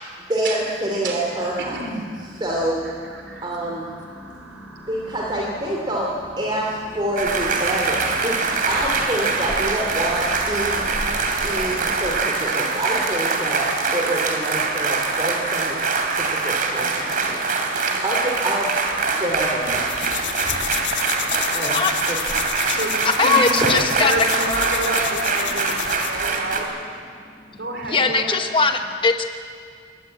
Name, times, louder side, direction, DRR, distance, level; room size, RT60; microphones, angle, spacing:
voice 1, 0.3-1.8 2.4-2.8 3.4-3.9 4.9-6.1 6.4-8.4 8.7-10.8 11.4-17.7 18.0-18.7 19.2-19.9 21.5-22.2, right 1 dB, 25° right, -2 dB, 2.7 m, -27 dB
sound 1, 0.6-12.0, equal, 5° right, 5.6 m, -41 dB
voice 2, 1.6-2.1 2.8-3.5 17.9-18.0 22.7-22.9 23.2-26.7 27.6-28.4, right 2 dB, 65° right, 2 dB, 3.7 m, -28 dB
sound 2, 7.2-26.6, right 4 dB, 50° right, 3.0 m, -23 dB
sound 3, 19.7-26.2, left 10 dB, 85° left, 1.4 m, -31 dB
voice 3, 23.2-24.1 27.9-29.2, left 4 dB, 30° left, 5 dB, 1.0 m, -20 dB
23.0 x 18.5 x 9.0 m, 2.2 s
head